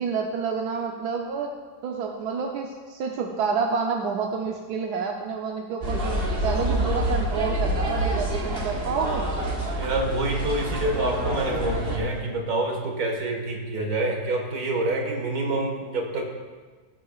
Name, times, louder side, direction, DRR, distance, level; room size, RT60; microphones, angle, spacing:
voice 1, 0.0-1.5 1.8-9.3, right 5 dB, 90° right, 1 dB, 1.3 m, -29 dB
sound 1, 5.8-12.0, right 1 dB, 40° right, 1.4 m, -27 dB
voice 2, 9.8-16.2, right 2 dB, 70° right, 1 dB, 2.1 m, -27 dB
17.5 x 8.7 x 2.4 m, 1.4 s
omnidirectional pair, 1.7 m